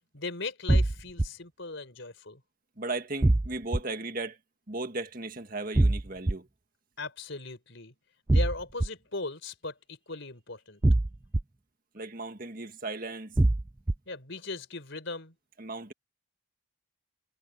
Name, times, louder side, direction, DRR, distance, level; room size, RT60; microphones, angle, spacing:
voice 1, 0.1-2.4 7.0-7.9 8.3-10.8 14.1-15.3, left 3 dB, 60° left, 4.5 m, -38 dB
sound 1, 0.7-1.3 3.2-3.8 5.7-6.3 8.3-8.9 10.8-11.4 13.4-13.9, right 2 dB, 15° right, 0.3 m, -22 dB
voice 2, 2.8-4.4 4.7-6.5 11.9-13.3 15.6-15.9, right 2 dB, 40° right, 1.9 m, -36 dB
head